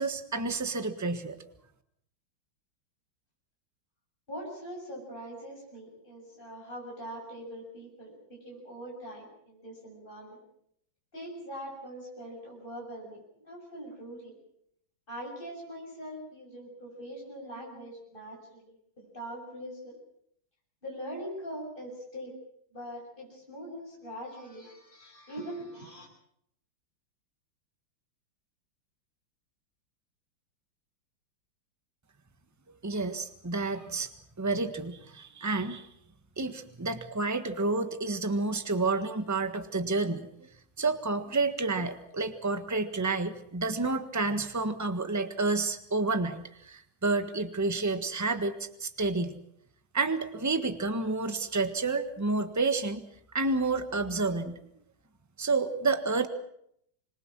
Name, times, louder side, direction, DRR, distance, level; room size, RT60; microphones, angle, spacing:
voice 1, 0.0-1.4 32.8-34.1 34.4-35.9 36.4-40.3 40.8-49.4 49.9-53.0 53.3-54.7 55.4-56.3, right 3 dB, 10° right, 9 dB, 1.3 m, -30 dB
voice 2, 4.3-10.4 11.1-14.4 15.1-20.0 20.8-22.4 22.7-26.1, equal, 25° left, -2 dB, 7.3 m, -42 dB
27.0 x 21.5 x 6.2 m, 0.71 s
omnidirectional pair, 2.1 m